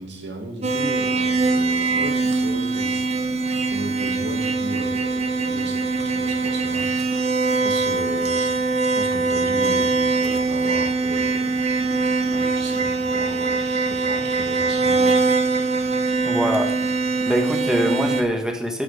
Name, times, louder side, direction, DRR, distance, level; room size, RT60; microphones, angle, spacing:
voice 1, 0.0-3.0 3.7-6.9 7.6-8.5 9.0-11.4 12.3-15.2, right 1 dB, 75° right, 3 dB, 2.1 m, -35 dB
sound 1, 0.6-18.2, right 3 dB, 40° right, 1.1 m, -22 dB
voice 2, 16.2-16.7 17.2-18.8, equal, 5° right, 3 dB, 1.4 m, -23 dB
13.5 x 6.2 x 4.9 m, 0.78 s
head